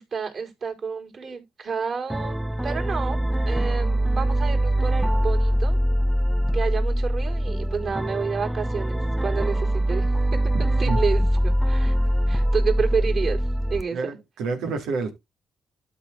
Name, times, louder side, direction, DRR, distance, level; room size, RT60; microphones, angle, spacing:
voice 1, 0.0-5.8 6.5-10.5 10.8-11.9 12.3-14.1, right 5 dB, 55° right, 4.5 m, -30 dB
sound 1, 2.1-13.8, equal, 10° right, 0.7 m, -23 dB
voice 2, 10.5-11.0 13.9-15.1, right 4 dB, 80° right, 2.5 m, -29 dB
12.5 x 4.3 x 3.8 m
hypercardioid pair, 50°, 0 cm